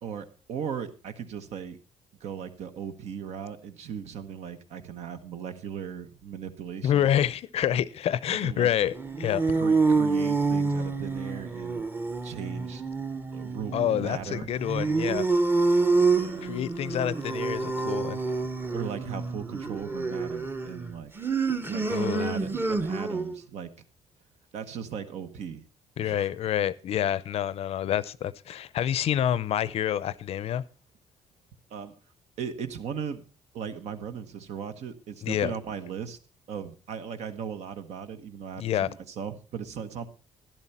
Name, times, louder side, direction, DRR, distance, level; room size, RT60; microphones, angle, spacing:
voice 1, 0.0-1.8 2.2-7.1 7.7-7.8 8.4-8.7 9.5-11.8 12.2-12.8 13.3-14.5 16.1-16.5 18.7-21.1 21.7-23.7 24.5-25.7 26.0-26.3 31.7-31.9 32.4-33.2 33.5-36.2 36.5-40.1, right 7 dB, 75° right, 1.2 m, -37 dB
voice 2, 6.8-9.4 13.7-15.3 16.4-18.2 21.9-22.3 26.0-30.6 35.2-35.5 38.6-38.9, left 10 dB, 60° left, 0.6 m, -27 dB
sound 1, 8.9-23.4, right 4 dB, 20° right, 0.8 m, -27 dB
12.5 x 10.5 x 4.3 m
cardioid pair, 120°, 11 cm